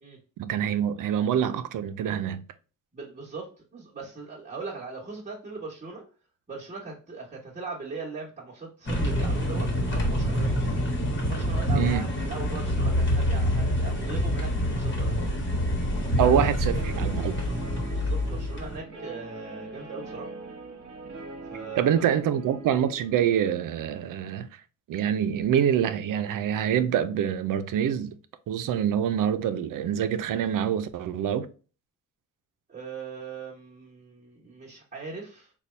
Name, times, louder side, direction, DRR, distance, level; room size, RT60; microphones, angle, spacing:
voice 1, 0.4-2.4 11.7-12.1 16.2-17.3 21.8-24.5 24.9-28.2 28.5-31.5, right 9 dB, 85° right, 0.5 m, -25 dB
voice 2, 2.9-6.0 6.5-10.7 11.2-15.2 16.2-16.4 17.9-20.3 21.4-22.2 32.7-35.5, right 4 dB, 25° right, 1.1 m, -39 dB
sound 1, 8.9-18.8, equal, 40° left, 1.2 m, -26 dB
Guitar, 16.7-23.3, right 2 dB, 45° right, 1.1 m, -42 dB
4.2 x 2.3 x 3.2 m
wide cardioid pair, 135°, 31 cm